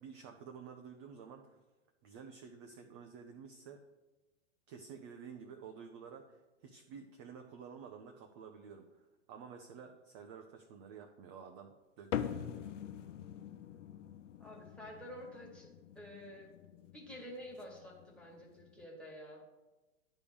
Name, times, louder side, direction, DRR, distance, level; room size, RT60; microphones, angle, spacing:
voice 1, 0.0-1.6 2.0-3.8 4.7-12.5, right 6 dB, 25° right, 4 dB, 0.4 m, -51 dB
sound 1, 12.1-18.8, left 9 dB, 75° left, 0.7 m, -44 dB
voice 2, 14.4-15.7 15.9-16.5 16.9-19.4, equal, 5° left, -2 dB, 1.5 m, -49 dB
10.0 x 3.5 x 6.8 m, 1.1 s
hypercardioid pair, 135°, 37 cm